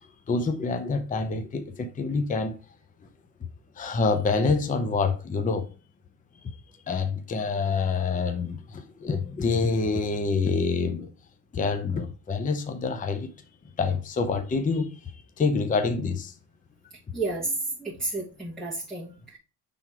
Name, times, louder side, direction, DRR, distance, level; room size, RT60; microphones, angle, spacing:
voice 1, 0.3-2.6 3.8-5.7 6.9-11.1 11.5-13.3 13.8-15.1 15.4-16.3, left 4 dB, 20° left, 0.6 m, -26 dB
voice 2, 17.1-19.4, right 2 dB, ahead, 1.2 m, -31 dB
5.9 x 3.5 x 4.5 m
cardioid pair, 135°, 40 cm